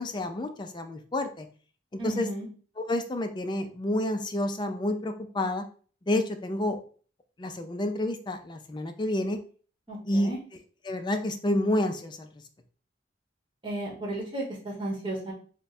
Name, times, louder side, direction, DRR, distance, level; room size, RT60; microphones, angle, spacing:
voice 1, 0.0-1.5 1.9-2.3 2.9-5.6 6.1-6.8 7.4-9.4 10.1-10.3 10.9-12.3, left 1 dB, 25° left, 6 dB, 0.4 m, -29 dB
voice 2, 2.0-2.5 9.9-10.4 13.6-15.3, right 1 dB, 25° right, -4 dB, 1.3 m, -34 dB
3.5 x 2.2 x 4.1 m, 0.42 s
head